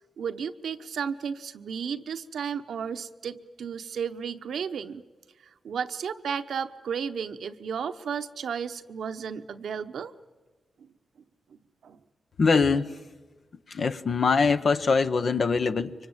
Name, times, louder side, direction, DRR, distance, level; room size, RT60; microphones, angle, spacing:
voice 1, 0.2-5.0 5.6-10.1 10.8-10.9 11.8-12.0, right 7 dB, 80° right, 0.9 m, -33 dB
voice 2, 12.4-13.0 13.7-15.9, left 4 dB, 65° left, 1.1 m, -23 dB
24.5 x 24.0 x 8.9 m
cardioid pair, 55°, 0 cm